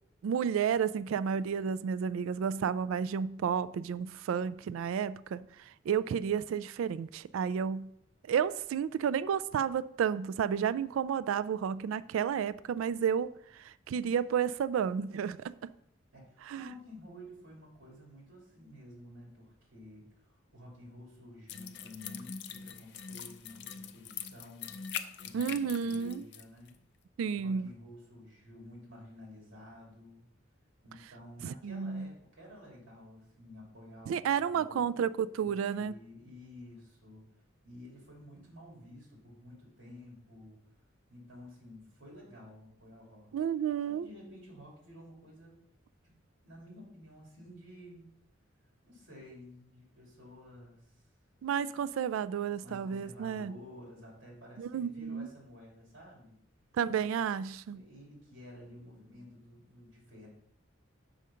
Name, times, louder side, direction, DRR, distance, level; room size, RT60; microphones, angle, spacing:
voice 1, 0.2-5.4 5.9-7.9 8.3-13.3 13.6-15.7 16.5-16.7 25.3-26.2 27.2-27.7 31.4-32.1 34.1-35.9 43.3-44.1 51.4-53.5 54.6-55.3 56.8-57.8, right 7 dB, 85° right, 17 dB, 0.3 m, -31 dB
voice 2, 16.1-24.8 25.2-26.8 27.2-30.3 30.8-34.9 35.4-37.2 37.6-40.6 41.1-43.3 43.8-45.6 46.0-46.2 46.4-48.1 48.8-51.0 52.6-56.4 56.9-57.0 57.7-60.3, left 1 dB, 70° right, -2 dB, 2.9 m, -52 dB
sound 1, 21.5-26.4 26.7-26.8, left 8 dB, 55° left, 0.5 m, -43 dB
6.4 x 5.0 x 5.6 m, 0.73 s
head